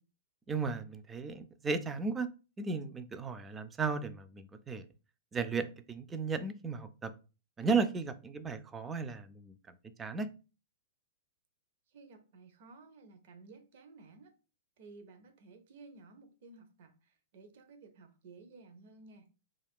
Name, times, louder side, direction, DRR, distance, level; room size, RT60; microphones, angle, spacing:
voice 1, 0.5-2.3 2.6-4.9 5.3-7.1 7.6-10.3, right 4 dB, 15° right, 0.3 m, -35 dB
voice 2, 11.9-14.3 14.8-19.3, right 3 dB, 60° right, 0.6 m, -55 dB
2.3 x 2.3 x 3.5 m
hypercardioid pair, 120°, 0 cm